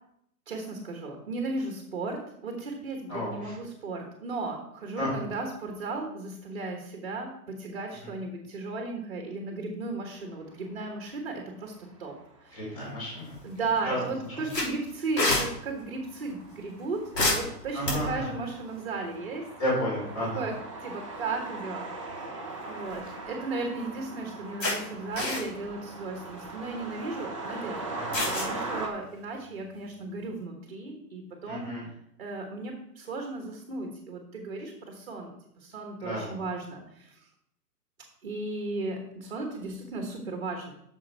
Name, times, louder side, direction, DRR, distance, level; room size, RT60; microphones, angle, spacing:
voice 1, 0.5-11.7 12.0-12.1 12.4-12.7 13.4-19.5 20.3-20.5 20.8-21.9 22.7-27.9 28.3-31.7 32.2-35.3 35.6-37.3 38.2-40.7, right 3 dB, 40° right, 3 dB, 1.3 m, -35 dB
voice 2, 3.1-3.5 5.0-5.1 8.0-8.1 12.5-13.3 13.8-14.0 17.7-18.3 19.6-20.4 27.9-28.2 31.5-31.8 36.0-36.4, left 1 dB, 20° left, -5 dB, 4.1 m, -32 dB
sound 1, 10.5-10.9 11.5-12.5 12.8-12.9 13.3-28.9, right 2 dB, 20° right, 0.7 m, -40 dB
sound 2, 13.2-13.7 14.0-14.1 14.5-15.5 17.1-18.3 19.9-20.2 20.5-20.6 22.6-23.2 23.8-23.9 24.6-24.8 25.1-25.7 26.2-26.4 28.1-28.5, left 2 dB, 85° left, 3.4 m, -28 dB
8.5 x 6.5 x 4.5 m, 0.75 s
hypercardioid pair, 175°, 49 cm